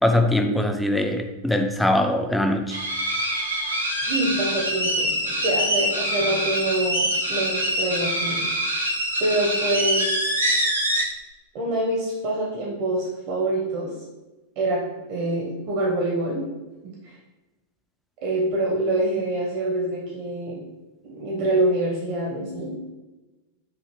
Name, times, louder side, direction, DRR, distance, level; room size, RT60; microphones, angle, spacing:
voice 1, 0.0-2.8, left 1 dB, 5° left, 5 dB, 0.5 m, -22 dB
sound 1, 2.7-11.0, equal, 85° right, 1.0 m, -25 dB
voice 2, 4.0-8.4 9.2-10.2 11.5-13.9 14.6-14.8 15.1-16.4 17.0-17.2 18.2-20.6 21.0-22.7, right 1 dB, 45° right, -3 dB, 1.0 m, -25 dB
6.2 x 2.7 x 3.1 m, 1.1 s
figure-of-eight pair, 90°, 0 cm